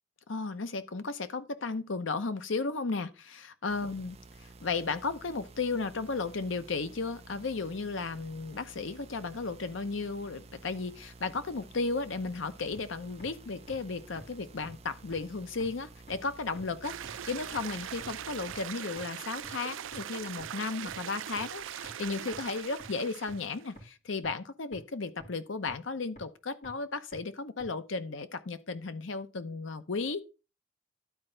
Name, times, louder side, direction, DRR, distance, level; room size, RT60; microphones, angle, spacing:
voice 1, 0.3-4.2 4.6-30.2, left 4 dB, 80° left, 0.8 m, -34 dB
sound 1, 3.7-18.7, right 3 dB, 35° right, 0.7 m, -52 dB
sound 2, 12.7-12.8 13.2-13.3 13.7-13.8 14.2-14.3 14.6-14.7 15.1-15.2 15.6-15.7 16.1-16.2 16.6-16.7 17.0-17.1 17.5-17.6 18.0-18.1 18.5-18.6 19.0-19.1 19.4-19.5 19.9-20.0 20.4-20.5 20.9-21.0 21.4-21.5 21.8-21.9 22.3-22.4 22.8-22.9 23.3-23.4 23.8-23.9 24.2-24.3 24.7-24.8 25.2-25.3 25.7-25.8 26.2-26.3 26.6-26.7 27.1-27.2 27.6-27.7, equal, 40° left, 3.2 m, -49 dB
sound 3, 16.8-23.7, right 10 dB, 85° right, 0.4 m, -41 dB
12.0 x 4.4 x 3.8 m
head